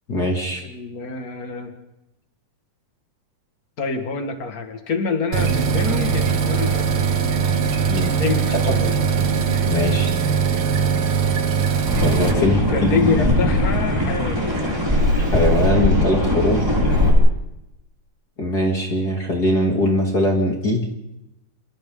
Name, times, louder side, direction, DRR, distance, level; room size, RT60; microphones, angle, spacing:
voice 1, 0.1-0.6 7.9-8.2 8.7-8.8 9.6-10.1 12.0-13.3 15.3-16.7 18.4-20.8, left 1 dB, 25° left, 0 dB, 2.6 m, -21 dB
voice 2, 0.6-1.7 3.8-7.1 8.2-9.2 12.3-14.5, left 4 dB, 60° left, 5 dB, 0.9 m, -26 dB
sound 1, 5.3-12.3, right 6 dB, 65° right, 1.3 m, -20 dB
sound 2, 11.9-17.1, left 1 dB, 5° right, 5.3 m, -20 dB
28.0 x 26.5 x 3.8 m, 0.90 s
omnidirectional pair, 4.7 m